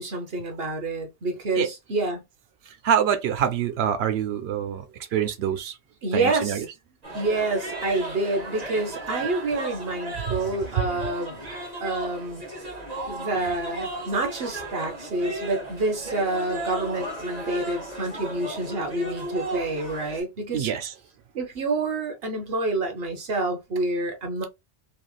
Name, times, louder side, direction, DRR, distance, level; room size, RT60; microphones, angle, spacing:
voice 1, 0.0-2.2 6.0-6.6 7.1-11.4 11.8-12.4 13.1-20.7 21.3-24.4, right 2 dB, 70° right, 1.1 m, -28 dB
voice 2, 2.7-4.9 5.1-5.8 6.1-6.7 10.3-10.4 10.8-10.9 20.5-20.9, right 9 dB, 90° right, 0.9 m, -25 dB
sound 1, 7.0-20.2, right 1 dB, 40° right, 1.4 m, -35 dB
3.3 x 2.4 x 2.3 m
omnidirectional pair, 1.0 m